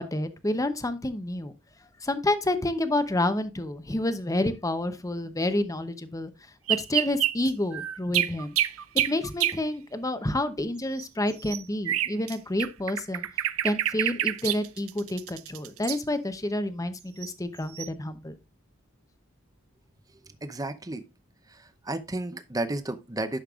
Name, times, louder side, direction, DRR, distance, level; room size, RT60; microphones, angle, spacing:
voice 1, 0.0-1.5 2.0-6.3 6.7-8.6 9.1-13.3 13.6-18.3, left 1 dB, 15° left, 0.7 m, -29 dB
sound 1, 6.7-9.6 11.0-12.3 12.6-16.0 17.2-17.3 17.7-17.9, right 12 dB, 75° right, 0.5 m, -27 dB
voice 2, 20.3-21.1 21.5-23.4, right 2 dB, 15° right, 0.7 m, -33 dB
10.5 x 6.5 x 2.4 m
head